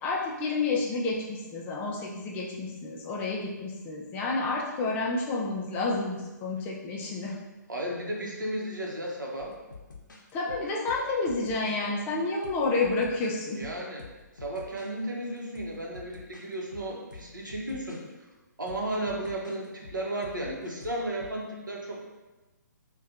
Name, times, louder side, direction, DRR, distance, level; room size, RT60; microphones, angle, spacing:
voice 1, 0.0-7.4 10.3-13.6, left 3 dB, 15° left, -2 dB, 0.3 m, -30 dB
voice 2, 7.7-9.6 13.6-14.1 14.3-18.0 18.6-22.1, right 1 dB, 90° right, -1 dB, 0.8 m, -34 dB
sound 1, 9.4-11.9 12.4-14.9 15.4-18.0 18.7-21.4, left 5 dB, 80° left, 0.5 m, -48 dB
4.1 x 2.2 x 2.5 m, 1.1 s
figure-of-eight pair, 135°, 10 cm